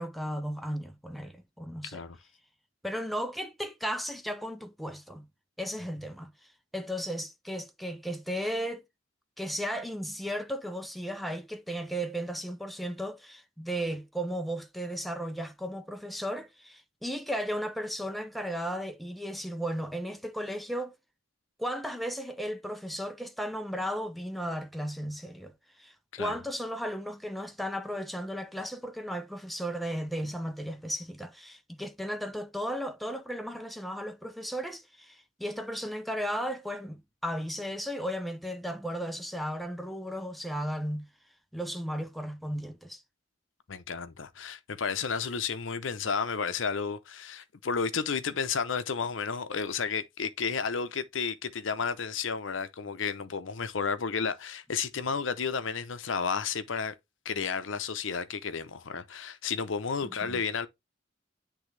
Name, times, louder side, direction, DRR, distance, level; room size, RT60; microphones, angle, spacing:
voice 1, 0.0-2.0 2.8-5.3 5.6-6.3 6.7-8.8 9.4-21.0 21.6-25.5 25.8-41.1 41.5-43.0 60.2-60.4, equal, ahead, 0.6 m, -35 dB
voice 2, 43.7-56.9 57.2-60.7, left 5 dB, 75° left, 0.7 m, -32 dB
10.0 x 3.5 x 3.3 m
head